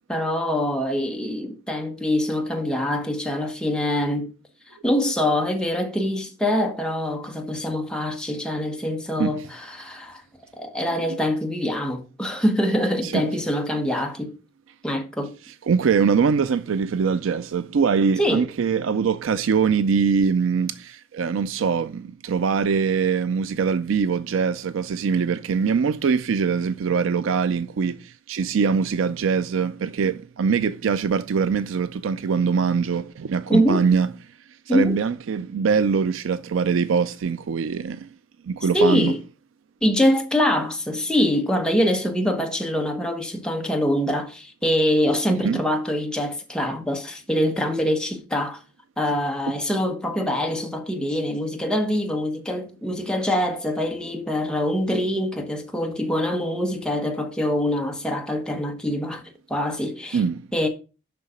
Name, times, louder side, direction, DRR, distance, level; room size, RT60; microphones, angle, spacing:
voice 1, 0.1-4.3 4.8-10.2 10.5-14.3 14.8-15.3 18.2-18.4 33.5-33.8 34.7-35.0 38.7-39.2 39.8-48.6 49.0-59.2 59.5-60.2 60.5-60.7, equal, 5° left, 1.1 m, -24 dB
voice 2, 15.7-34.1 34.7-38.1 38.4-39.1 45.4-45.6 60.1-60.5, right 6 dB, 75° right, 0.4 m, -23 dB
6.9 x 5.6 x 5.0 m
head